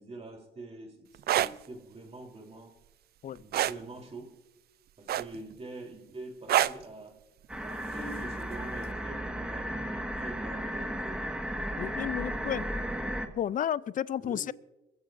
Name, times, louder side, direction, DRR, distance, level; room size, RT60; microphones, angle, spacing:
voice 1, 0.0-2.8 3.4-4.4 5.0-7.2 7.6-11.2 14.2-14.5, right 2 dB, 35° right, 0 dB, 3.5 m, -45 dB
sound 1, 1.1-1.5 3.5-3.8 5.1-5.5 6.5-6.8 8.2-8.4, right 12 dB, 60° right, 0.4 m, -25 dB
sound 2, 7.5-13.3, equal, 5° right, 1.6 m, -34 dB
voice 2, 11.8-12.7 13.3-14.5, left 10 dB, 45° left, 20 dB, 0.5 m, -32 dB
22.0 x 15.0 x 2.6 m, 1.0 s
cardioid pair, 75°, 19 cm